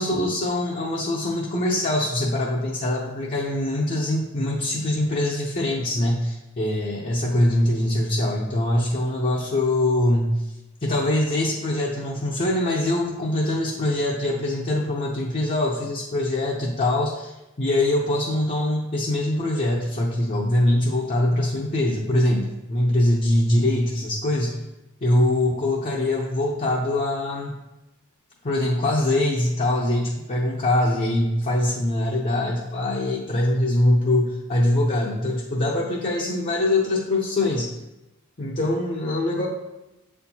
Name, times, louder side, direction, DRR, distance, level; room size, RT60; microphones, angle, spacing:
voice 1, 0.0-10.5 10.8-24.6 25.0-27.6 28.4-37.7 38.4-39.5, left 1 dB, 35° left, -3 dB, 0.6 m, -23 dB
7.7 x 4.4 x 2.8 m, 0.97 s
head